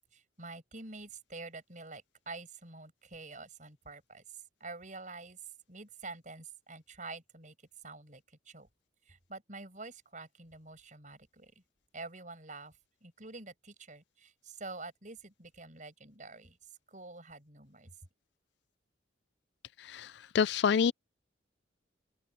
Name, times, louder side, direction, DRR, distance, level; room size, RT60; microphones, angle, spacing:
voice 1, 0.1-5.4 5.7-7.6 7.8-8.7 9.1-11.5 11.9-16.6 16.9-17.9, right 3 dB, 40° right, 7.0 m, -47 dB
voice 2, 19.8-20.9, left 6 dB, 60° left, 0.4 m, -28 dB
open air
head